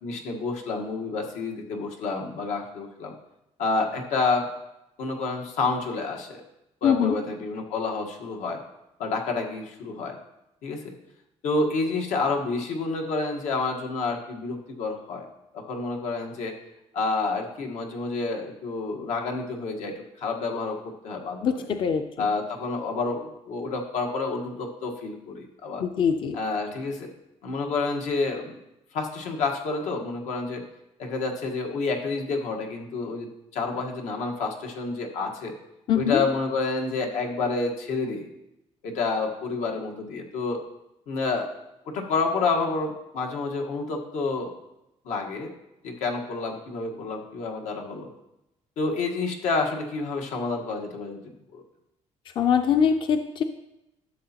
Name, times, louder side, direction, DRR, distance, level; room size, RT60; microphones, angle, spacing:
voice 1, 0.0-3.1 3.6-4.5 5.0-6.4 6.8-8.6 9.0-10.2 10.6-10.9 11.4-15.3 15.5-16.6 16.9-21.7 22.2-25.8 26.3-27.1 27.4-28.6 28.9-30.6 31.0-35.5 35.9-38.3 38.8-40.6 41.1-41.5 41.9-44.5 45.0-45.5 45.8-48.1 48.8-51.2 51.5-51.6, left 3 dB, 85° left, 2 dB, 1.4 m, -29 dB
voice 2, 6.8-7.2 21.4-22.3 25.8-26.4 35.9-36.2 52.4-53.4, left 7 dB, 40° left, 7 dB, 0.4 m, -23 dB
12.5 x 6.9 x 2.9 m, 0.89 s
cardioid pair, 155°, 12 cm